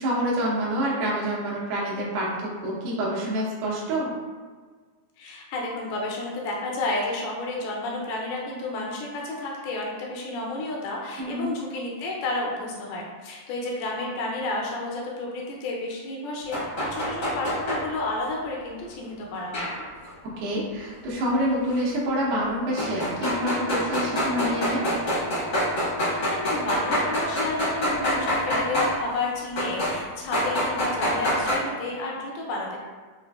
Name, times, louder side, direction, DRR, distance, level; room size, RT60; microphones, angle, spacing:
voice 1, 0.0-4.1 11.2-11.5 20.4-24.8, equal, 80° right, -5 dB, 2.9 m, -27 dB
voice 2, 5.2-19.7 26.0-32.8, left 2 dB, 80° left, -2 dB, 2.3 m, -31 dB
sound 1, 16.5-17.8 19.5-20.1 21.7-21.8 22.8-28.9 29.6-30.0 30.3-31.6, equal, 65° left, 1.0 m, -26 dB
6.4 x 2.5 x 2.3 m, 1.5 s
omnidirectional pair, 4.5 m